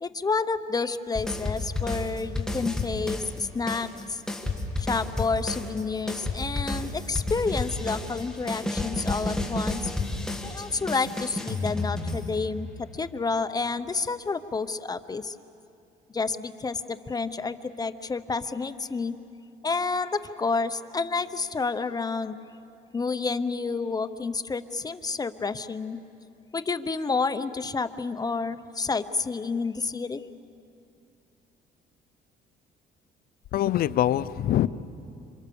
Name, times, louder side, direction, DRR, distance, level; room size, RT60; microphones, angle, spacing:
voice 1, 0.0-4.2 4.8-9.9 10.4-15.4 16.1-19.1 19.6-22.4 22.9-26.0 26.5-30.2, left 4 dB, 20° left, 0.8 m, -29 dB
sound 1, 1.1-3.4 3.7-12.7, left 2 dB, 5° left, 2.5 m, -31 dB
voice 2, 33.5-34.7, left 12 dB, 60° left, 0.7 m, -23 dB
28.0 x 26.5 x 7.0 m
cardioid pair, 110°, 17 cm